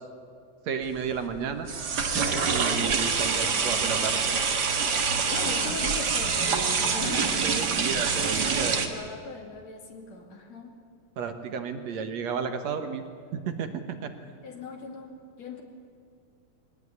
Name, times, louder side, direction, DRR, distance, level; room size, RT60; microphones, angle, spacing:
voice 1, 0.7-1.7 2.5-4.2 7.0-8.8 11.2-13.0 13.3-14.1, right 6 dB, 65° right, 7 dB, 2.4 m, -32 dB
sound 1, 0.8-8.9, right 5 dB, 40° right, 1.6 m, -26 dB
voice 2, 4.8-7.4 8.2-10.8 14.4-15.1 15.4-15.6, left 3 dB, 60° left, 3 dB, 3.6 m, -39 dB
23.0 x 18.0 x 9.7 m, 2.3 s
omnidirectional pair, 3.5 m